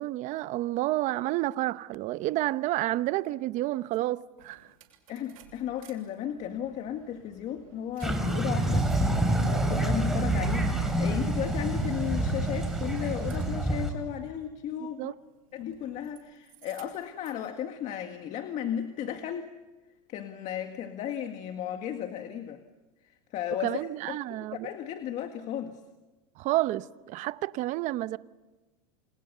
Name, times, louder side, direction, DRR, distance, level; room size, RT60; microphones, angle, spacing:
voice 1, 0.0-4.7 15.0-15.1 23.6-24.7 26.4-28.2, right 16 dB, 45° right, 0.9 m, -30 dB
sound 1, 3.9-4.0 4.4-5.9 6.3-14.0 15.5-16.2 16.5-17.5, right 10 dB, 75° right, 7.5 m, -43 dB
voice 2, 5.1-8.9 9.4-15.1 15.5-19.5 20.1-22.6 23.0-23.8 24.1-25.8, left 10 dB, 40° left, 1.9 m, -35 dB
sound 2, 8.0-13.9, right 1 dB, ahead, 4.0 m, -27 dB
sound 3, 10.2-13.9, left 11 dB, 65° left, 7.4 m, -45 dB
29.5 x 27.5 x 6.8 m
supercardioid pair, 140°, 18 cm